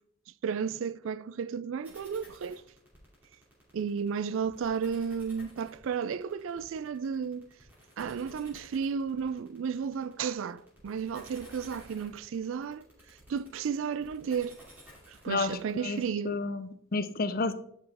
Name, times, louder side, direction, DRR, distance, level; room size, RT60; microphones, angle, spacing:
voice 1, 0.4-2.6 3.7-7.5 8.0-12.8 13.3-14.6 15.1-16.4, right 6 dB, 65° right, 0.3 m, -33 dB
sound 1, 1.8-16.1, equal, 10° right, 2.9 m, -54 dB
voice 2, 15.3-17.5, left 3 dB, 40° left, 0.5 m, -31 dB
11.0 x 5.5 x 3.5 m
head